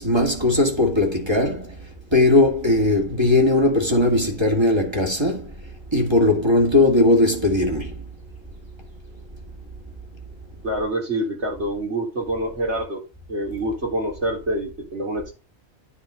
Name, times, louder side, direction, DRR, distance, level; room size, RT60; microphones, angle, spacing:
voice 1, 0.0-1.8 2.1-5.5 5.9-8.0, left 2 dB, 20° right, 2.3 m, -19 dB
voice 2, 10.6-13.0 13.3-15.3, right 1 dB, 55° right, 3.8 m, -26 dB
9.8 x 3.9 x 6.4 m
omnidirectional pair, 1.4 m